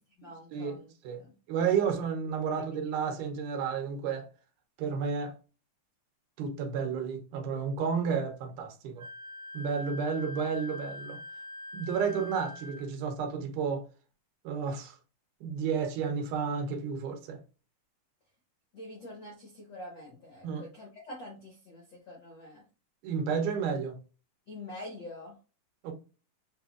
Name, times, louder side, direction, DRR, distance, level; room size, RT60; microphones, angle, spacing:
voice 1, 0.2-1.3 2.5-3.0 18.7-22.6 24.5-25.3, left 1 dB, 75° left, 1.0 m, -46 dB
voice 2, 1.5-4.3 4.8-5.3 6.4-9.1 9.5-11.2 11.7-13.9 14.4-15.0 15.4-17.4 20.4-20.6 23.0-24.0 25.8-25.9, right 6 dB, 80° right, 2.3 m, -31 dB
Wind instrument woodwind instrument, 9.0-12.9, left 2 dB, 60° right, 2.4 m, -44 dB
5.8 x 2.6 x 2.3 m
omnidirectional pair, 3.7 m